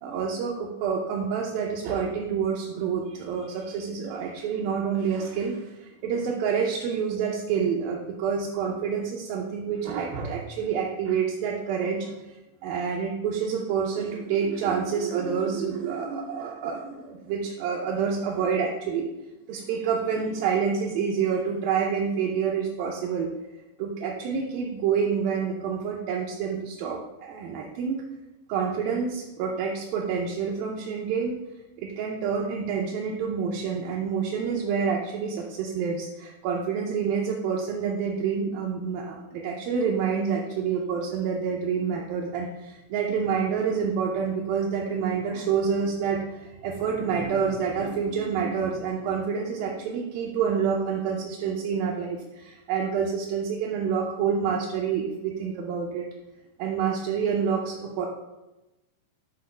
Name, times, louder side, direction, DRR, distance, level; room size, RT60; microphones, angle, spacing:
voice 1, 0.0-12.1 12.6-19.1 19.5-23.3 23.8-28.0 28.5-31.4 31.8-56.1 56.6-58.1, right 6 dB, 80° right, -2 dB, 2.4 m, -28 dB
8.0 x 2.9 x 5.1 m, 1.0 s
omnidirectional pair, 4.2 m